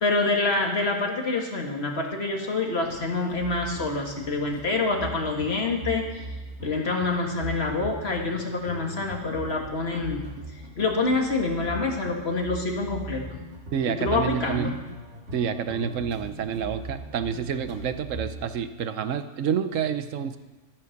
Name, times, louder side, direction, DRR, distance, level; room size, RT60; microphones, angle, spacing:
voice 1, 0.0-6.3 6.6-10.3 10.8-13.4 13.9-14.7, left 3 dB, 50° left, 1 dB, 2.0 m, -26 dB
sound 1, 2.8-18.5, right 2 dB, 65° right, 2.0 m, -40 dB
voice 2, 13.7-14.8 15.3-20.4, right 7 dB, 80° right, 10 dB, 1.1 m, -28 dB
12.0 x 10.5 x 6.5 m, 1.1 s
omnidirectional pair, 1.3 m